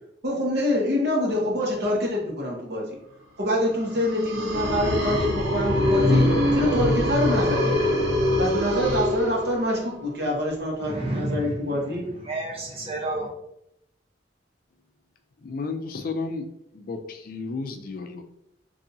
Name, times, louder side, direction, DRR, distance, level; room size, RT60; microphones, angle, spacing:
voice 1, 0.2-2.8 3.4-6.3 6.5-7.8 8.4-12.1, left 1 dB, 65° right, -3 dB, 1.1 m, -25 dB
sound 1, 3.9-9.8, left 1 dB, 80° right, 1.4 m, -23 dB
voice 2, 10.8-13.3, right 1 dB, 35° right, -1 dB, 0.9 m, -31 dB
voice 3, 15.4-16.4 16.7-18.2, left 4 dB, 55° left, 6 dB, 0.4 m, -32 dB
3.9 x 2.7 x 2.7 m, 0.78 s
head